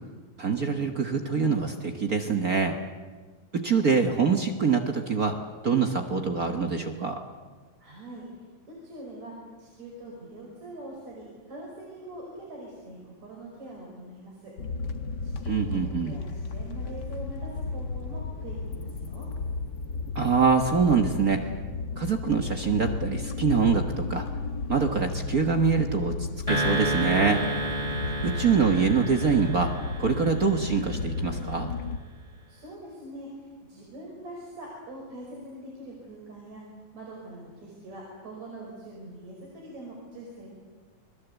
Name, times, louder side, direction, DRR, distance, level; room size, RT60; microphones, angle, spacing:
voice 1, 0.4-2.7 3.5-5.4 5.6-7.2 15.4-16.2 20.1-21.5 22.0-24.2 24.7-27.4 28.2-29.7 30.0-31.7, right 5 dB, 50° right, 5 dB, 1.1 m, -24 dB
voice 2, 7.8-8.3 8.7-14.5 15.2-19.3 32.5-36.6 36.9-40.5, right 1 dB, 65° right, -2 dB, 6.5 m, -43 dB
sound 1, 14.6-32.0, left 4 dB, 50° left, 1.4 m, -34 dB
sound 2, 26.5-30.9, right 1 dB, 10° right, 2.8 m, -31 dB
29.5 x 21.5 x 8.2 m, 1.4 s
omnidirectional pair, 3.4 m